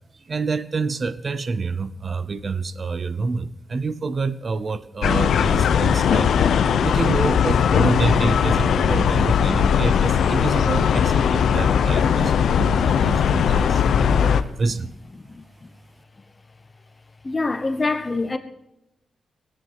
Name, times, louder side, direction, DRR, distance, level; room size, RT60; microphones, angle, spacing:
voice 1, 0.3-6.3 6.8-14.9, right 4 dB, 35° right, 0.7 m, -27 dB
sound 1, 5.0-14.4, left 7 dB, 85° left, 0.8 m, -19 dB
voice 2, 17.2-18.4, left 3 dB, 20° left, 1.0 m, -25 dB
17.0 x 9.7 x 5.7 m
wide cardioid pair, 170°, 0 cm